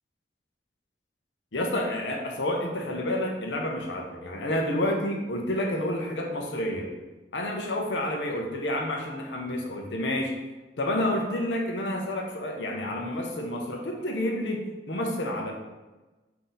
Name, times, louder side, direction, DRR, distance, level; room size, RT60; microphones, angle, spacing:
voice 1, 1.5-6.9 7.3-10.3 10.8-15.5, left 1 dB, 85° left, 1 dB, 0.7 m, -29 dB
4.0 x 2.8 x 3.8 m, 1.1 s
head